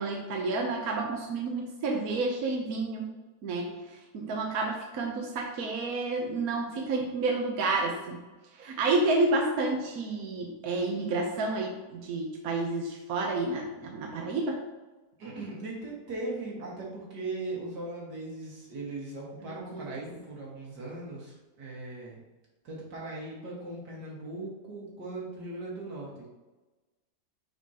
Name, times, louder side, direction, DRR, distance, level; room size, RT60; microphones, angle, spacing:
voice 1, 0.0-3.1 3.4-3.7 4.1-8.2 8.6-14.6 19.7-19.9, right 3 dB, 65° right, 0 dB, 1.2 m, -30 dB
voice 2, 15.2-22.2 22.6-26.3, right 2 dB, 80° right, -3 dB, 2.3 m, -39 dB
6.2 x 5.3 x 2.9 m, 1.2 s
omnidirectional pair, 1.8 m